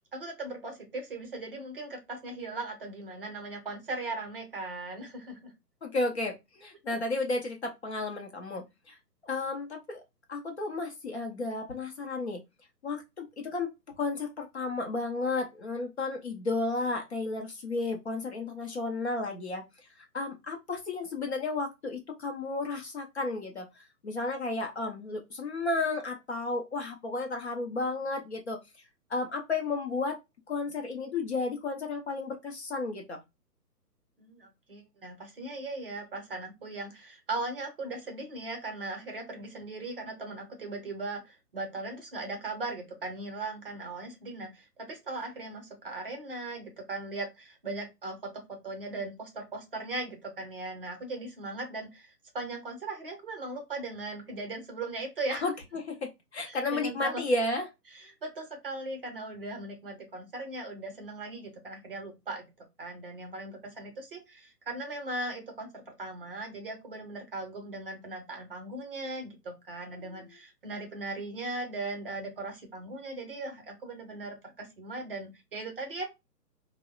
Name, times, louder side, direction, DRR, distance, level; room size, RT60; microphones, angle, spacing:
voice 1, 0.1-5.5 34.2-55.4 56.4-57.2 57.9-62.5 62.8-76.1, right 2 dB, 35° right, 3 dB, 0.6 m, -38 dB
voice 2, 5.8-9.0 9.2-10.0 10.3-12.4 12.8-19.6 20.1-23.7 24.0-28.6 29.1-30.2 30.5-33.2 55.3-57.6, left 3 dB, 45° left, 3 dB, 0.5 m, -33 dB
2.9 x 2.0 x 2.2 m, 0.22 s
hypercardioid pair, 145°, 49 cm